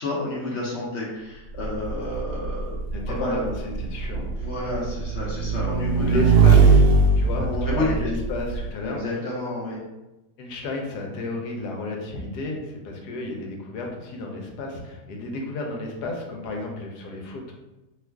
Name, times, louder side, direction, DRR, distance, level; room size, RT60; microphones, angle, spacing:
voice 1, 0.0-2.8 3.1-3.5 4.1-6.2 6.4-6.6 7.4-8.1 8.8-9.8, left 2 dB, 55° left, -5 dB, 0.8 m, -30 dB
Motorcycle / Engine, 1.6-8.7, right 4 dB, 80° right, 1.1 m, -20 dB
voice 2, 2.9-4.3 5.9-6.8 7.2-9.0 10.4-17.5, left 2 dB, 75° left, 1 dB, 1.2 m, -32 dB
3.0 x 2.4 x 3.4 m, 1.0 s
omnidirectional pair, 1.8 m